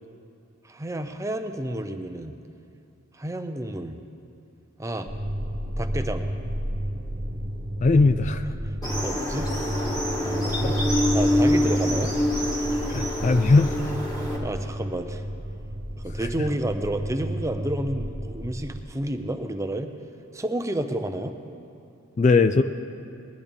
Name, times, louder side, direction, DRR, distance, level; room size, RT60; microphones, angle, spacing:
voice 1, 0.7-2.3 3.1-4.0 4.8-5.1 5.8-6.3 9.0-9.5 10.2-10.7 11.1-12.1 14.4-15.2 16.0-19.9 20.3-21.4, right 1 dB, 15° right, 7 dB, 0.5 m, -30 dB
sound 1, 5.1-18.8, equal, 45° right, 0.8 m, -31 dB
voice 2, 7.8-8.4 12.9-13.8 22.2-22.6, left 3 dB, 35° left, 10 dB, 0.3 m, -19 dB
sound 2, 8.8-14.4, left 1 dB, 15° left, 1.9 m, -26 dB
21.0 x 11.0 x 3.5 m, 2.7 s
head